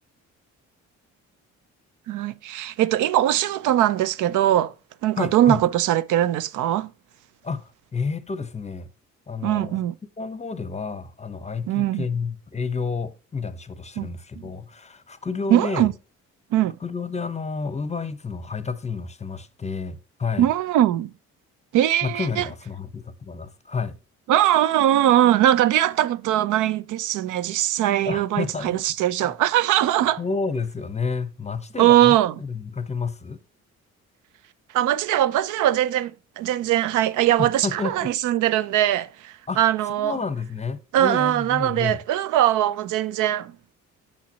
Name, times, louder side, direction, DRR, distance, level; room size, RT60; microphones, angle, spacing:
voice 1, 2.1-4.7 5.0-6.9 9.4-9.9 11.7-12.0 14.0-14.1 15.5-15.9 16.5-16.7 20.4-21.1 21.7-22.5 24.3-30.2 31.8-32.3 34.7-40.2 40.9-43.5, right 12 dB, 85° right, 0.5 m, -21 dB
voice 2, 5.2-5.6 7.4-8.9 9.3-9.8 10.2-15.9 16.8-20.5 22.0-24.0 28.0-28.8 29.2-29.3 30.2-33.4 37.4-38.1 39.5-42.0, left 4 dB, 20° left, 0.7 m, -30 dB
6.6 x 5.8 x 2.8 m
cardioid pair, 90°, 30 cm